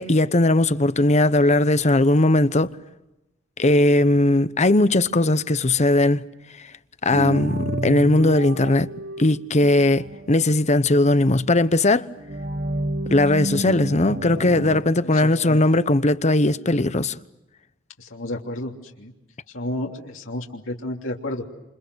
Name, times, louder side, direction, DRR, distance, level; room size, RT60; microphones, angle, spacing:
voice 1, 0.0-2.7 3.6-6.2 7.0-8.9 9.2-12.1 13.1-17.1, left 2 dB, 35° left, 1.0 m, -18 dB
sound 1, 7.1-10.6 12.2-14.8, right 1 dB, 50° right, 1.6 m, -30 dB
voice 2, 15.0-15.6 18.0-19.1 19.5-21.5, left 1 dB, 85° left, 3.1 m, -31 dB
28.5 x 28.5 x 6.4 m
head